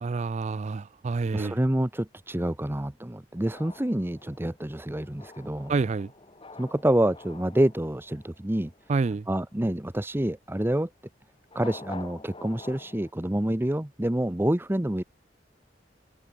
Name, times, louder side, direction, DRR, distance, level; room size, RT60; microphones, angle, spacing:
voice 1, 0.0-1.6 5.7-6.1 8.9-9.3, right 4 dB, 40° right, 0.4 m, -28 dB
voice 2, 1.3-5.7 6.6-8.7 9.3-10.9 11.5-15.0, right 1 dB, 10° right, 0.8 m, -27 dB
sound 1, 3.3-9.1 11.4-13.1, left 3 dB, 30° left, 3.8 m, -47 dB
head